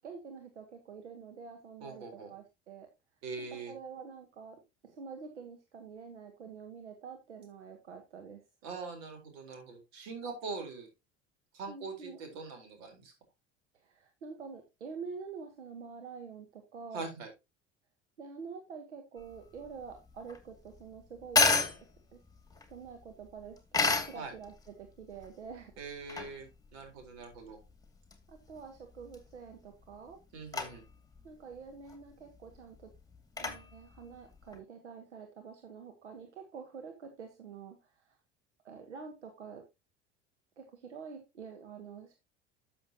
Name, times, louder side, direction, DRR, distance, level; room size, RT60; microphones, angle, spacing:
voice 1, 0.0-2.9 3.4-8.4 11.7-12.2 13.7-17.1 18.2-21.4 22.1-22.2 22.7-25.7 28.3-30.2 31.2-32.9 33.4-38.2 38.6-39.6 40.6-42.2, right 5 dB, 85° right, 6 dB, 1.4 m, -47 dB
voice 2, 1.8-2.3 3.2-3.7 8.6-10.9 11.5-13.1 16.9-17.3 24.1-24.3 25.8-27.6 30.3-30.8, right 4 dB, 65° right, 4 dB, 4.3 m, -42 dB
sound 1, 19.2-34.6, left 4 dB, 10° left, 2.4 m, -35 dB
12.5 x 6.8 x 2.9 m, 0.24 s
figure-of-eight pair, 70°, 34 cm